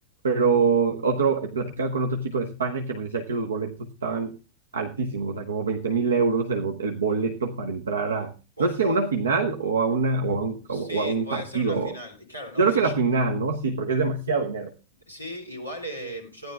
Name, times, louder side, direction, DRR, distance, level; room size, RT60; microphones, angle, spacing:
voice 1, 0.2-4.4 4.7-8.3 8.6-11.9 12.6-14.7, right 4 dB, 70° right, 4 dB, 1.1 m, -25 dB
voice 2, 10.7-12.9 15.1-16.5, equal, 90° right, 3 dB, 3.5 m, -37 dB
14.5 x 10.5 x 3.6 m, 0.31 s
figure-of-eight pair, 90°, 0 cm